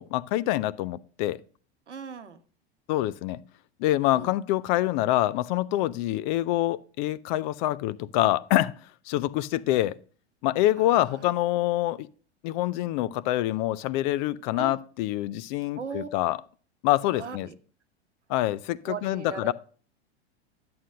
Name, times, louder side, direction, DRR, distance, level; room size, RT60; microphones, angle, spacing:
voice 1, 0.0-1.4 2.9-3.4 3.8-8.7 9.1-10.0 10.4-12.1 12.4-16.4 16.8-17.5 18.3-19.5, left 15 dB, 45° left, 0.5 m, -26 dB
voice 2, 1.9-2.4 4.1-4.3 10.8-11.3 14.5-14.8 15.7-16.1 17.1-17.6 18.8-19.5, right 6 dB, 90° right, 1.0 m, -38 dB
11.0 x 7.7 x 2.5 m
hypercardioid pair, 90°, 34 cm